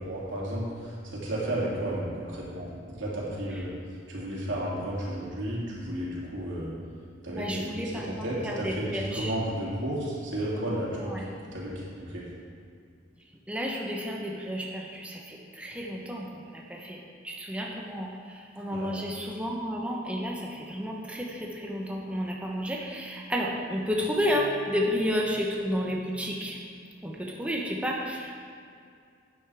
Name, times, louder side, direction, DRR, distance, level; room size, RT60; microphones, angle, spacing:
voice 1, 0.0-2.7 3.0-3.7 4.1-6.7 7.2-11.1 11.5-12.2 18.7-18.9, right 1 dB, 85° right, -6 dB, 2.8 m, -33 dB
voice 2, 7.3-9.3 11.0-11.2 13.5-26.6 27.0-28.3, equal, 5° right, -2 dB, 1.0 m, -31 dB
11.5 x 9.1 x 3.5 m, 2.3 s
head